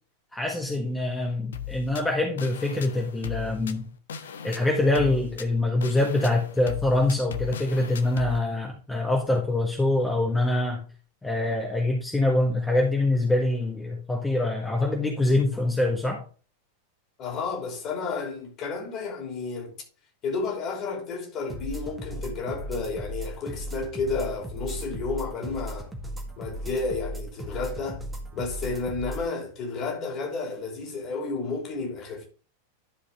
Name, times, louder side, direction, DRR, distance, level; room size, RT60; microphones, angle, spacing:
voice 1, 0.3-3.9 4.4-10.8 11.2-16.2, left 2 dB, 10° left, 1.6 m, -24 dB
sound 1, 1.5-8.4, left 9 dB, 65° left, 0.7 m, -38 dB
voice 2, 17.2-19.7 20.2-25.9 26.4-28.0 28.3-32.3, left 4 dB, 35° left, 3.2 m, -31 dB
sound 2, 21.5-29.3, right 1 dB, 10° right, 1.8 m, -36 dB
12.0 x 5.0 x 3.5 m
figure-of-eight pair, 90°, 0 cm